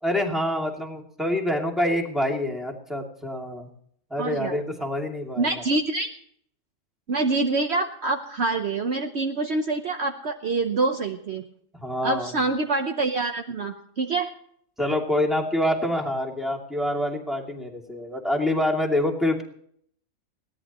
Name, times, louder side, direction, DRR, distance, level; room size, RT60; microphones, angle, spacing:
voice 1, 0.0-3.7 4.1-5.5 11.7-12.3 14.8-19.4, left 1 dB, ahead, 1 dB, 2.5 m, -26 dB
voice 2, 4.2-4.5 5.4-6.1 7.1-11.4 12.0-14.3, right 3 dB, 55° right, 5 dB, 1.2 m, -26 dB
21.5 x 16.5 x 3.0 m, 0.64 s
omnidirectional pair, 1.4 m